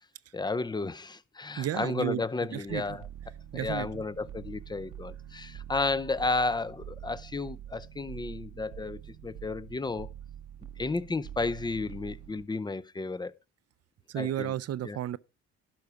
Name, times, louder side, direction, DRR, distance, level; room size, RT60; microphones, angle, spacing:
voice 1, 0.3-3.1 3.5-10.1 10.8-13.3 14.2-14.5 14.8-15.0, left 3 dB, 15° left, 0.6 m, -32 dB
voice 2, 1.6-2.2 2.5-2.8 3.5-4.0 14.1-15.2, right 11 dB, 55° right, 0.6 m, -32 dB
sound 1, 2.7-12.5, right 10 dB, 80° right, 1.0 m, -45 dB
11.5 x 4.8 x 6.9 m
cardioid pair, 90°, 30 cm